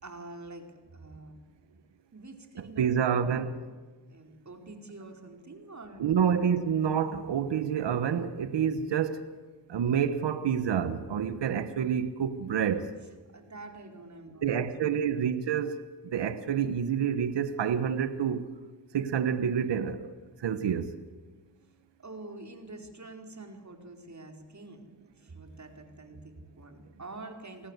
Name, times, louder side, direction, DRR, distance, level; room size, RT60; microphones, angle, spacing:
voice 1, 0.0-1.4 2.1-3.4 4.1-6.0 13.3-14.9 22.0-27.7, right 2 dB, 40° right, 4.5 m, -46 dB
voice 2, 2.8-3.6 6.0-9.2 9.7-12.9 14.4-15.9 16.1-18.5 18.9-20.1 20.4-21.0, right 8 dB, 80° right, 1.4 m, -28 dB
29.0 x 19.0 x 8.2 m
cardioid pair, 55°, 42 cm